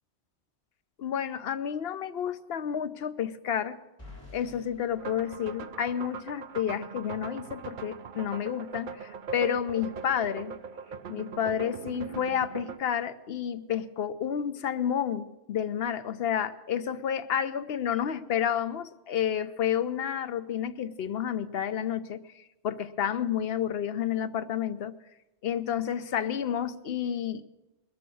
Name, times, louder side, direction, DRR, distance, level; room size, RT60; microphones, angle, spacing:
voice 1, 1.0-3.8 4.3-10.5 11.1-22.2 22.6-24.9 25.4-27.4, left 9 dB, 65° left, 11 dB, 0.9 m, -30 dB
sound 1, 4.0-6.1, left 2 dB, 10° left, 5.8 m, -50 dB
sound 2, 5.0-12.8, right 6 dB, 55° right, 0.7 m, -40 dB
21.0 x 7.0 x 7.7 m, 1.0 s
omnidirectional pair, 1.2 m